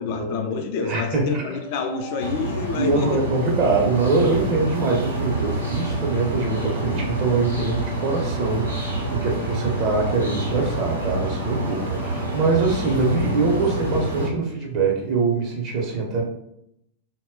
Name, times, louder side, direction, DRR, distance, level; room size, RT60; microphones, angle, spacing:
voice 1, 0.0-3.2 4.6-4.7, left 4 dB, 45° left, 6 dB, 0.4 m, -28 dB
voice 2, 0.8-1.5 2.8-16.2, right 3 dB, 40° right, 0 dB, 0.7 m, -23 dB
sound 1, 1.0-13.4, left 5 dB, 90° left, 0.7 m, -42 dB
sound 2, 2.2-14.3, right 2 dB, 80° right, 0.7 m, -27 dB
2.1 x 2.1 x 3.6 m, 0.76 s
figure-of-eight pair, 90°, 0 cm